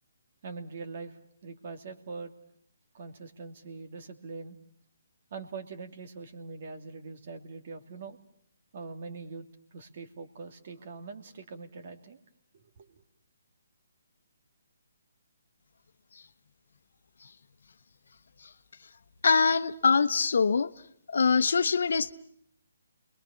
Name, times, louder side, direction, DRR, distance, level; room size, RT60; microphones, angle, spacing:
voice 1, 0.4-2.3 2.9-4.6 5.3-8.2 8.7-9.5 9.7-12.2 12.5-13.0, right 4 dB, 50° right, 6 dB, 2.8 m, -43 dB
voice 2, 19.2-20.7 21.1-22.1, left 5 dB, 70° left, 13 dB, 1.0 m, -23 dB
29.5 x 21.5 x 7.2 m, 0.67 s
hypercardioid pair, 150°, 0 cm